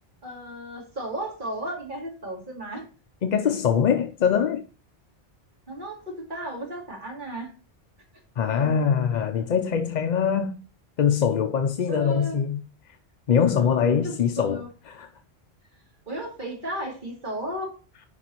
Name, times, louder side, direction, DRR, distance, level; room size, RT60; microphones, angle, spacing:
voice 1, 0.2-2.9 5.7-7.5 11.9-12.4 13.6-14.7 16.1-17.8, right 1 dB, 50° right, 2.7 m, -34 dB
voice 2, 3.2-4.6 8.4-10.6 11.0-12.6 13.3-15.1, left 7 dB, 55° left, 0.6 m, -23 dB
9.9 x 5.1 x 2.9 m
omnidirectional pair, 1.1 m